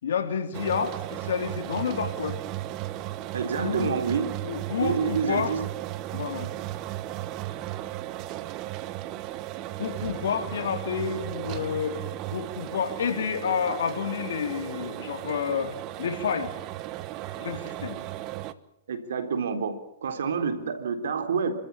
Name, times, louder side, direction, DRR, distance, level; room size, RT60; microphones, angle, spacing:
voice 1, 0.0-2.4 3.6-3.9 4.4-5.5 6.1-6.5 9.8-12.0 12.3-16.5 17.4-18.0, left 7 dB, 80° left, 5 dB, 3.9 m, -29 dB
sound 1, 0.5-18.5, right 14 dB, 35° right, 1.2 m, -35 dB
voice 2, 3.3-4.3 4.8-5.6 18.9-21.5, right 6 dB, 85° right, 8 dB, 3.8 m, -28 dB
29.0 x 14.0 x 8.8 m, 0.79 s
hypercardioid pair, 145°, 0 cm